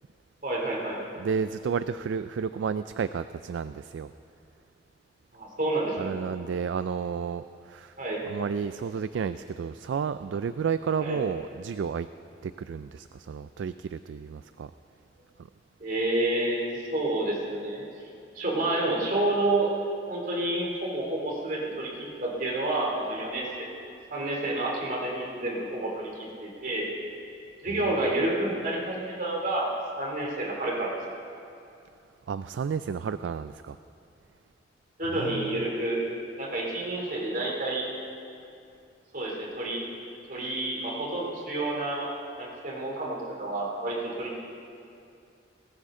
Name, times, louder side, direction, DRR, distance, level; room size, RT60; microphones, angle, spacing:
voice 1, 0.4-1.0 5.3-6.1 8.0-8.2 11.0-11.2 15.8-17.8 18.3-19.7 20.1-23.7 24.1-26.9 27.6-29.7 30.0-30.9 35.0-36.0 36.4-37.9 39.1-39.8 40.3-44.4, right 2 dB, 50° right, -3 dB, 2.9 m, -29 dB
voice 2, 1.2-4.1 6.0-8.0 8.2-12.1 12.4-14.7 27.7-27.8 32.3-33.8 35.1-35.6, right 6 dB, 80° right, 12 dB, 0.3 m, -31 dB
18.5 x 15.5 x 3.7 m, 2.6 s
head